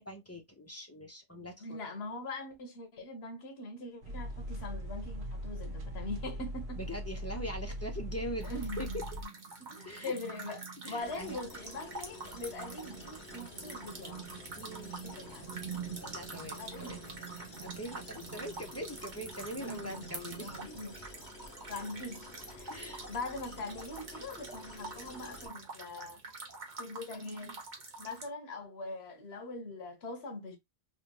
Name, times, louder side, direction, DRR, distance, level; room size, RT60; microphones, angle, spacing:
voice 1, 0.0-1.8 6.8-8.9 9.8-10.2 10.8-11.4 14.6-14.9 16.0-17.0 17.4-20.8 22.7-23.0, equal, 15° left, 0.6 m, -42 dB
voice 2, 1.6-6.8 8.4-9.0 9.6-14.3 15.0-15.6 16.6-17.1 19.6-20.1 20.4-21.0 21.7-26.2 26.8-30.6, left 2 dB, 75° left, 1.1 m, -42 dB
sound 1, 4.0-9.2, equal, 75° right, 1.2 m, -40 dB
sound 2, 8.4-28.3, right 4 dB, 45° right, 1.0 m, -45 dB
sound 3, 11.0-25.5, left 2 dB, 60° left, 1.3 m, -51 dB
3.3 x 2.6 x 2.8 m
omnidirectional pair, 1.1 m